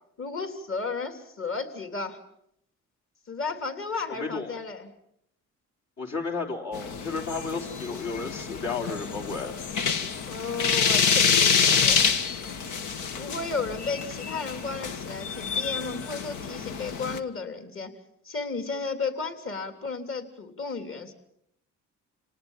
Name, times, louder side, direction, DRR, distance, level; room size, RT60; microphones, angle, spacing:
voice 1, 0.2-2.2 3.3-4.9 10.3-12.1 13.2-17.9 18.2-21.1, left 4 dB, 45° left, 7 dB, 3.4 m, -33 dB
voice 2, 4.1-4.5 6.0-9.6, left 4 dB, 60° left, 1 dB, 3.7 m, -33 dB
sound 1, 6.7-17.2, left 6 dB, 80° left, 1.5 m, -27 dB
28.5 x 19.0 x 7.4 m, 0.74 s
cardioid pair, 90°, 30 cm